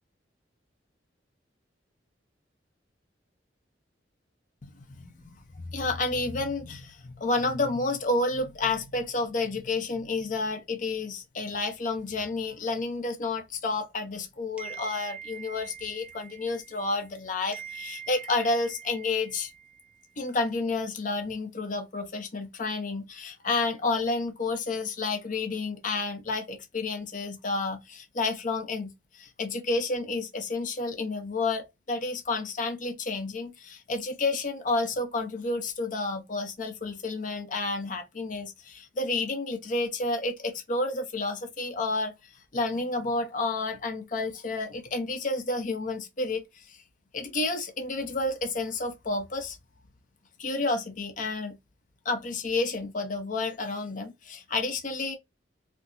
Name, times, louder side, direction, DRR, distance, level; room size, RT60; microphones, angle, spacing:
voice 1, 4.6-19.5 20.2-46.8 47.1-49.6 50.4-51.5 52.0-55.2, left 3 dB, 45° left, 0.6 m, -30 dB
sound 1, 14.6-17.2 17.5-20.1, right 8 dB, 5° right, 0.5 m, -44 dB
4.4 x 2.0 x 2.6 m
head